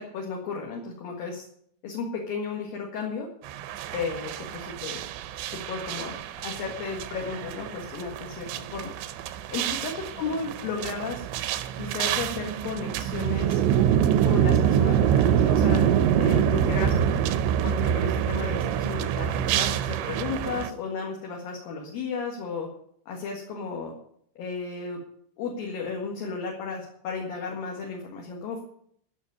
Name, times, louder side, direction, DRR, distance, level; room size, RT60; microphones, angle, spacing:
voice 1, 0.0-1.5 1.8-3.3 3.9-5.0 5.5-6.2 6.4-8.9 9.5-11.2 11.8-13.6 14.2-15.8 16.2-16.9 17.6-22.7 23.1-23.9 24.4-25.0 25.4-28.6, left 4 dB, 60° left, -1 dB, 3.2 m, -34 dB
sound 1, 3.5-20.7, right 9 dB, 90° right, 3.1 m, -25 dB
15.0 x 6.2 x 9.5 m, 0.67 s
omnidirectional pair, 5.3 m